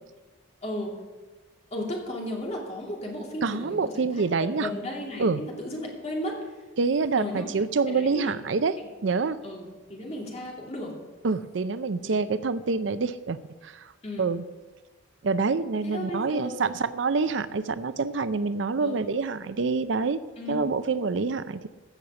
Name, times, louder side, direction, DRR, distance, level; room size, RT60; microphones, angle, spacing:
voice 1, 0.6-0.9 1.7-6.4 7.2-7.4 7.9-8.3 8.8-9.1 9.4-11.0 12.0-12.2 14.0-14.3 15.8-16.7 18.8-19.0 20.4-20.6, left 1 dB, 35° left, -1 dB, 2.7 m, -35 dB
voice 2, 3.4-4.7 5.2-5.4 6.8-8.8 9.0-9.4 11.2-13.4 13.6-13.9 14.2-14.4 15.2-20.2 20.5-21.7, right 4 dB, 65° right, 14 dB, 0.5 m, -26 dB
15.5 x 6.4 x 7.0 m, 1.2 s
head